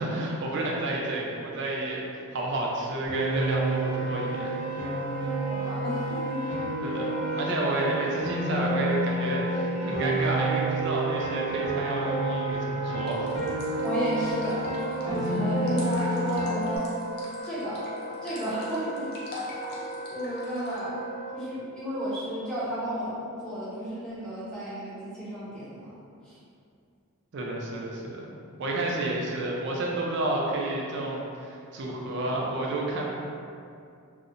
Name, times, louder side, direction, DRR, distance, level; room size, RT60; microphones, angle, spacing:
voice 1, 0.0-2.0 2.3-4.6 6.8-13.3 13.7-13.8 15.3-15.4 27.3-28.3 28.6-33.1, right 2 dB, 55° right, -2 dB, 0.4 m, -30 dB
Piano, 3.1-16.8, right 2 dB, 85° right, 0.7 m, -30 dB
Wind instrument woodwind instrument, 3.3-21.5, right 1 dB, 70° left, 1.1 m, -38 dB
voice 2, 5.5-6.4 13.8-14.6 15.0-16.9 17.4-17.8 18.2-21.0 21.3-26.0 26.2-26.4, equal, 5° left, -11 dB, 0.6 m, -33 dB
sound 1, 13.1-20.8, left 2 dB, 45° left, 0.4 m, -43 dB
2.7 x 2.0 x 2.5 m, 2.5 s
head